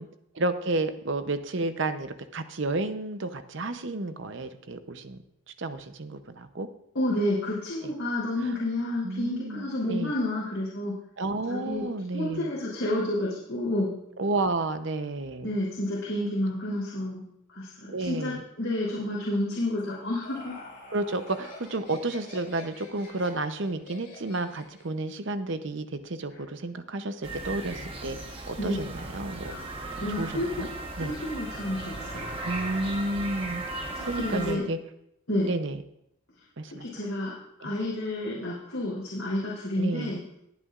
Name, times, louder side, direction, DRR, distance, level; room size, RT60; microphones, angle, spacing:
voice 1, 0.3-5.2 5.6-6.7 8.4-8.6 9.0-10.1 11.2-12.5 14.2-15.5 17.9-18.4 20.9-28.2 28.5-29.6 29.9-30.7 31.0-31.2 32.1-33.6 34.0-34.8 35.4-35.8 36.6-36.9 37.6-37.7 39.8-40.1, right 2 dB, 60° right, 10 dB, 0.7 m, -31 dB
voice 2, 6.9-11.0 11.5-14.0 15.4-17.2 17.5-20.5 28.6-28.9 29.4-29.7 29.9-30.7 31.0-32.4 33.9-34.6 35.3-35.5 36.7-37.4 37.6-40.2, left 1 dB, 70° left, -7 dB, 3.4 m, -30 dB
Laughter, 19.8-25.0, left 2 dB, 45° left, 4.5 m, -46 dB
sound 1, 27.2-34.5, right 2 dB, 25° right, 1.2 m, -37 dB
20.5 x 8.4 x 2.5 m, 0.77 s
head